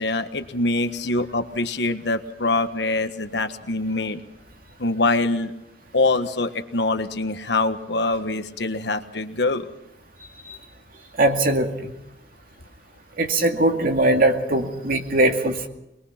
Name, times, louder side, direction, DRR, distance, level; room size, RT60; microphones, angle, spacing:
voice 1, 0.0-4.2 4.8-5.5 5.9-9.7, left 2 dB, 70° left, 8 dB, 1.4 m, -24 dB
voice 2, 11.2-11.9 13.2-15.7, right 1 dB, 55° right, 4 dB, 2.4 m, -21 dB
23.0 x 21.5 x 5.9 m, 0.88 s
head